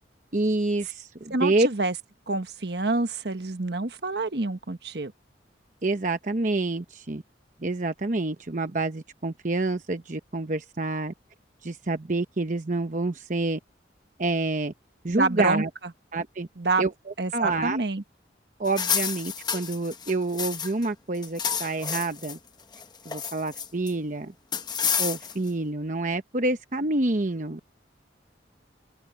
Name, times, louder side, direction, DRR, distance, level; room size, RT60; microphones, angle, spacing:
voice 1, 0.3-1.7 5.8-7.2 7.6-11.1 11.6-13.6 14.2-14.7 15.0-15.7 16.1-16.5 16.8-16.9 17.3-17.8 18.6-22.4 23.0-24.3 25.0-27.6, right 2 dB, 45° right, 0.9 m, -27 dB
voice 2, 1.3-1.9 2.3-5.1 15.2-15.6 16.6-16.9 17.2-18.0, right 3 dB, 65° right, 1.3 m, -27 dB
sound 1, 18.7-20.9 21.2-22.4 22.7-23.9 24.5-25.5, left 7 dB, 25° left, 0.9 m, -29 dB
open air
head